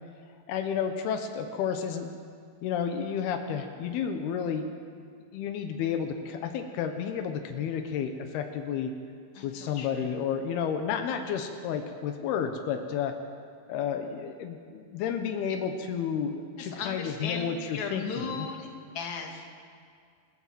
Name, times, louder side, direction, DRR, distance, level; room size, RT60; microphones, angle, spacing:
voice 1, 0.5-2.1 2.6-4.7 5.3-8.9 9.4-13.1 13.7-18.5, left 7 dB, 85° left, 6 dB, 3.2 m, -31 dB
voice 2, 9.3-10.2 16.6-18.7 19.0-19.6, left 5 dB, 50° left, 1 dB, 3.5 m, -37 dB
28.5 x 14.0 x 7.7 m, 2.2 s
omnidirectional pair, 4.4 m